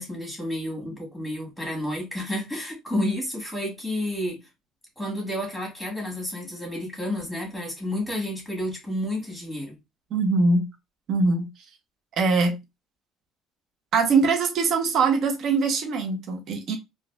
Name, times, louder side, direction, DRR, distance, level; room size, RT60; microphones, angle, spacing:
voice 1, 0.0-4.4 5.0-9.7, left 1 dB, ahead, 1.6 m, -30 dB
voice 2, 10.1-10.7 11.1-11.5 12.2-12.6 13.9-16.8, right 4 dB, 45° right, 0.7 m, -22 dB
3.9 x 2.6 x 2.3 m
cardioid pair, 150°, 0 cm